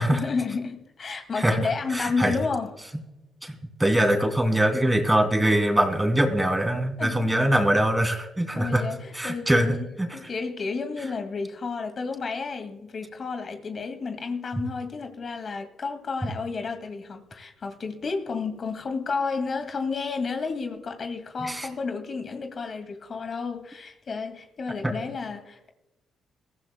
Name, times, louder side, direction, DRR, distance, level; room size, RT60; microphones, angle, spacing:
voice 1, 0.0-2.7 7.0-7.3 8.5-9.8 10.1-25.7, left 4 dB, 50° left, 2.1 m, -31 dB
voice 2, 1.3-2.3 3.4-8.8 9.1-10.1 21.4-21.7 24.8-24.9, right 1 dB, 15° right, 2.9 m, -23 dB
22.5 x 14.5 x 2.2 m
supercardioid pair, 60°, 0 cm